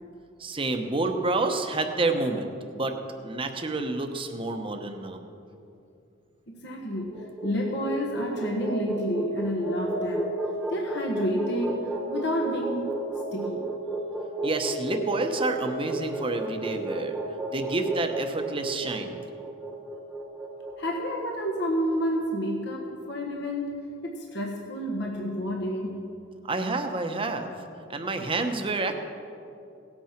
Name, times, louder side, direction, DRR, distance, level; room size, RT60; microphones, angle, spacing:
voice 1, 0.4-2.9 3.2-5.2 14.4-17.2 17.5-19.2 26.4-27.6 27.9-28.9, right 2 dB, 25° right, 5 dB, 1.0 m, -29 dB
voice 2, 6.5-7.2 7.4-10.4 10.7-12.9 13.3-13.7 20.8-26.0, equal, 60° left, -1 dB, 1.4 m, -30 dB
sound 1, 7.0-21.3, right 2 dB, 5° right, 1.3 m, -32 dB
17.5 x 8.6 x 5.9 m, 2.6 s
head